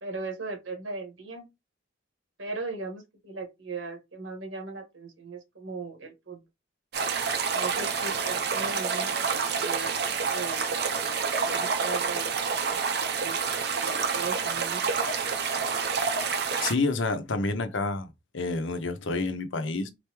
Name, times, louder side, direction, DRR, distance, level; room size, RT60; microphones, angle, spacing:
voice 1, 0.0-1.5 2.4-6.4 7.5-9.2 9.6-11.2 11.4-12.4 13.1-13.4 13.7-14.8, right 3 dB, 85° right, 1.7 m, -38 dB
sound 1, 6.9-16.7, right 5 dB, 55° right, 0.7 m, -28 dB
voice 2, 16.6-19.9, left 3 dB, 75° left, 0.8 m, -29 dB
4.2 x 3.4 x 3.1 m
head